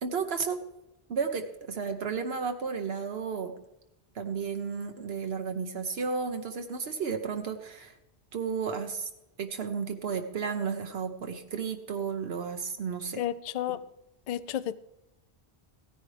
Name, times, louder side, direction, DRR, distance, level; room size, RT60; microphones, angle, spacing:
voice 1, 0.0-0.6 1.1-3.5 4.1-7.9 8.3-9.1 9.4-13.2, right 5 dB, 75° right, 1.1 m, -33 dB
voice 2, 13.2-13.9 14.3-14.8, left 11 dB, 55° left, 0.4 m, -32 dB
16.0 x 9.9 x 3.3 m
omnidirectional pair, 1.1 m